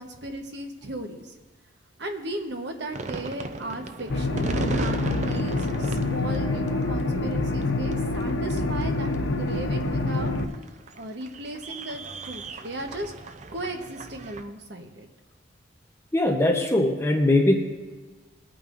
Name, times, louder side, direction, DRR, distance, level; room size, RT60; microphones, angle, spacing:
voice 1, 0.0-1.3 2.0-10.4 10.9-13.1 13.5-15.1, right 1 dB, 55° right, 4 dB, 1.1 m, -36 dB
sound 1, 2.9-14.4, right 3 dB, 35° right, 0.5 m, -36 dB
sound 2, 4.1-10.4, left 2 dB, 75° left, 0.8 m, -26 dB
voice 2, 16.1-17.5, left 1 dB, 15° left, 1 dB, 0.8 m, -21 dB
22.0 x 8.8 x 2.6 m, 1.3 s
head